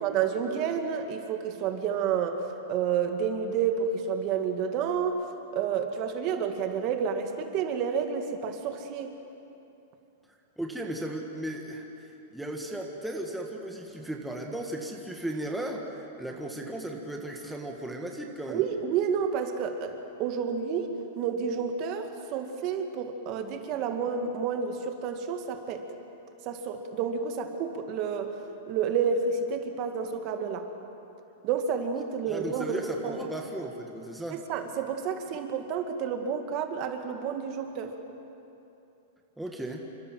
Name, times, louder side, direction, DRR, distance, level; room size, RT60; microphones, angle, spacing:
voice 1, 0.0-2.4 2.7-5.2 5.5-9.1 18.5-25.8 26.5-28.3 28.7-30.6 31.4-33.2 34.3-37.9, right 6 dB, 35° right, 6 dB, 2.0 m, -30 dB
voice 2, 10.6-18.6 32.3-34.4 39.4-39.9, right 1 dB, ahead, 0 dB, 1.7 m, -36 dB
28.5 x 25.5 x 7.7 m, 2.9 s
supercardioid pair, 165°, 0 cm